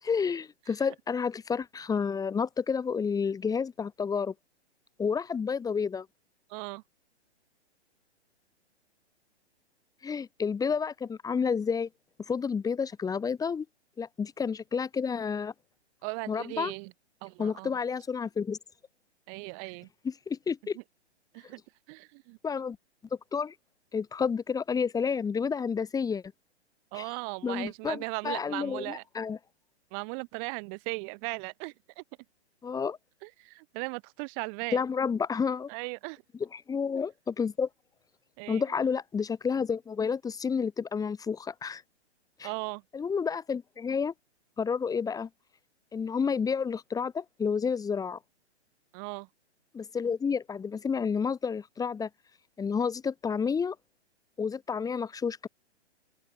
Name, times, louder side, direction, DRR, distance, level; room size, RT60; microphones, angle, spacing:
voice 1, 0.0-4.3 5.0-6.1 10.0-11.9 12.3-13.6 14.0-15.5 16.3-16.7 17.4-18.6 20.0-20.8 22.4-22.8 23.3-23.5 23.9-26.2 26.9-27.0 27.4-29.4 32.6-33.0 34.7-35.7 36.5-37.7 38.5-41.8 42.4-42.5 42.9-44.1 44.6-45.3 45.9-48.2 49.7-52.1 52.6-53.7 54.4-55.5, left 6 dB, 10° left, 6.8 m, -30 dB
voice 2, 6.5-6.8 16.0-16.9 17.2-17.8 19.3-19.9 21.3-21.6 21.9-22.4 26.9-29.0 29.9-32.0 33.2-34.8 35.7-36.2 38.4-38.6 42.4-42.8 48.9-49.3, right 40 dB or more, 30° right, 5.5 m, -37 dB
open air
figure-of-eight pair, 120°, 34 cm